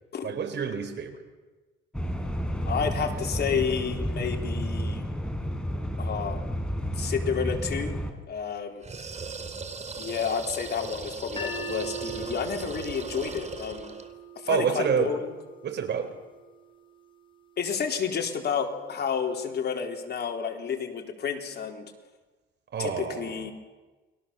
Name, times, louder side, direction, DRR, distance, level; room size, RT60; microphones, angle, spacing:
voice 1, 0.2-1.2 14.5-15.1 15.6-16.1 22.7-23.5, right 7 dB, 60° right, 8 dB, 4.6 m, -28 dB
sound 1, 1.9-8.1, equal, 5° left, 4.1 m, -31 dB
voice 2, 2.6-5.0 6.0-6.4 6.9-7.9 8.3-8.8 10.0-13.9 14.4-15.3 17.6-21.9 22.8-23.5, left 6 dB, 55° left, 3 dB, 4.1 m, -30 dB
sound 2, 8.8-14.1, right 4 dB, 35° right, 3.1 m, -38 dB
sound 3, 11.4-17.5, right 3 dB, 25° left, 4.7 m, -41 dB
29.5 x 22.5 x 7.2 m, 1.2 s
cardioid pair, 90°, 20 cm